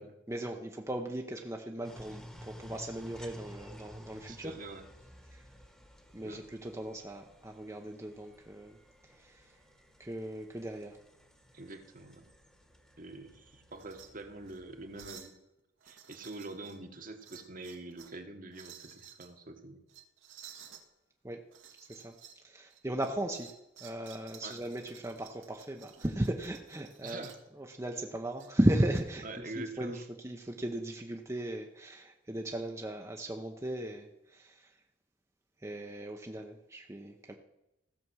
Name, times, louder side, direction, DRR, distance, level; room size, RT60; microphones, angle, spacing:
voice 1, 0.3-4.5 5.3-5.4 6.1-8.8 9.2-9.5 10.0-11.0 21.2-21.4 21.9-22.2 22.4-23.5 23.8-27.3 27.6-34.7 35.6-37.3, right 1 dB, 15° right, 2 dB, 0.7 m, -36 dB
sound 1, 1.8-15.1, equal, 5° left, 1.3 m, -53 dB
voice 2, 4.3-4.9 6.2-6.4 11.5-12.3 13.0-15.3 15.8-19.8 24.4-24.6 27.0-27.4 29.2-30.0, right 2 dB, 45° right, 6 dB, 1.3 m, -45 dB
sound 2, 13.7-14.1 14.4-14.6 14.9-15.4 15.8-16.8 17.2-18.2 18.5-19.3 19.9-20.8 21.5-22.4 22.7-27.5 28.4-29.0, right 8 dB, 80° right, 1.7 m, -53 dB
15.5 x 6.9 x 6.2 m, 0.89 s
head